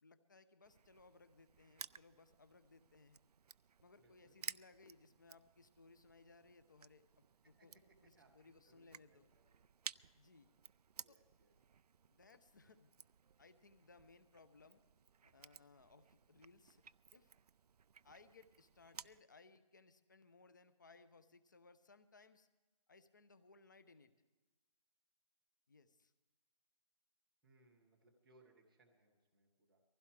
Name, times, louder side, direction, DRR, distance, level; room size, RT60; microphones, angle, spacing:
voice 1, 0.0-3.2 3.8-7.7 8.0-9.3 10.1-10.5 11.1-11.2 12.1-12.9 13.4-14.8 15.2-16.8 17.1-17.3 18.0-22.5 22.9-24.1 25.7-26.1, left 3 dB, 30° left, 12 dB, 0.8 m, -64 dB
Crushing, 0.6-19.2, right 7 dB, 90° right, 0.4 m, -56 dB
voice 2, 4.0-4.4 7.4-7.7 8.1-8.3 8.6-9.7 11.0-11.5 27.4-29.8, right 2 dB, ahead, -11 dB, 0.4 m, -71 dB
23.5 x 16.0 x 3.3 m, 1.2 s
hypercardioid pair, 175°, 20 cm